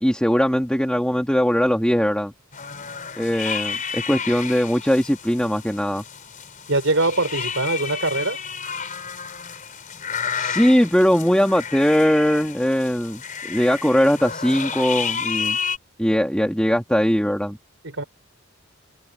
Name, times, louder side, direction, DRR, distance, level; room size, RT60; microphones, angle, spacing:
voice 1, 0.0-2.3 3.2-6.0 10.3-15.6 16.0-17.6, equal, 5° left, 1.8 m, -20 dB
sound 1, 2.5-15.8, left 6 dB, 40° left, 4.2 m, -31 dB
voice 2, 6.7-8.4 17.8-18.0, right 2 dB, 70° right, 4.7 m, -22 dB
head